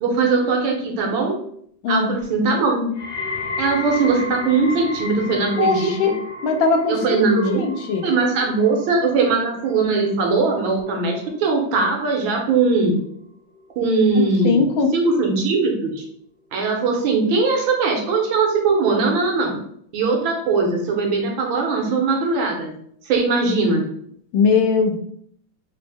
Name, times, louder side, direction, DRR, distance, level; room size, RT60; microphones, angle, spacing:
voice 1, 0.0-1.4 1.9-2.9 3.6-6.1 6.9-7.6 8.0-12.9 13.8-14.6 14.9-16.0 16.5-19.6 19.9-22.7 23.1-23.8, right 4 dB, 75° right, 0 dB, 1.5 m, -20 dB
voice 2, 1.8-2.2 5.6-6.1 6.4-7.2 7.5-8.0 14.2-14.9 24.3-25.0, left 5 dB, 80° left, 4 dB, 1.3 m, -20 dB
sound 1, 2.9-14.1 14.4-14.9 15.6-15.7, left 2 dB, 60° left, 1.0 m, -34 dB
4.0 x 2.0 x 3.3 m, 0.66 s
omnidirectional pair, 2.2 m